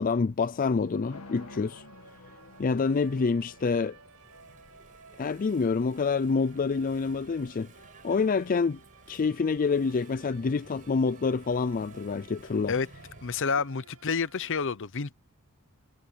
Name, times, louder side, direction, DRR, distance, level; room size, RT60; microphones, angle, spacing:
voice 1, 0.0-1.8 2.6-4.0 5.2-7.7 8.0-8.8 9.1-12.7, left 4 dB, 40° left, 0.4 m, -27 dB
sound 1, 0.8-14.6, right 4 dB, 75° right, 6.4 m, -56 dB
sound 2, 1.1-7.2, left 3 dB, 90° left, 1.6 m, -53 dB
Engine / Mechanisms, 1.3-13.4, right 2 dB, 35° right, 5.8 m, -56 dB
voice 2, 13.2-15.1, left 5 dB, 60° left, 0.8 m, -29 dB
head